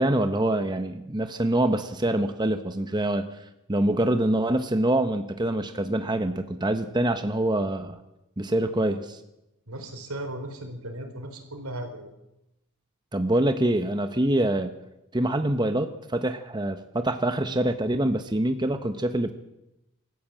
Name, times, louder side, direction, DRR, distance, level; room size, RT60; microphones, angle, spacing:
voice 1, 0.0-3.3 3.7-8.0 8.4-9.2 13.1-14.7 15.1-19.3, right 1 dB, 20° right, 8 dB, 0.9 m, -25 dB
voice 2, 9.7-12.1, right 1 dB, 80° right, 6 dB, 4.3 m, -36 dB
26.0 x 14.5 x 8.6 m, 0.92 s
head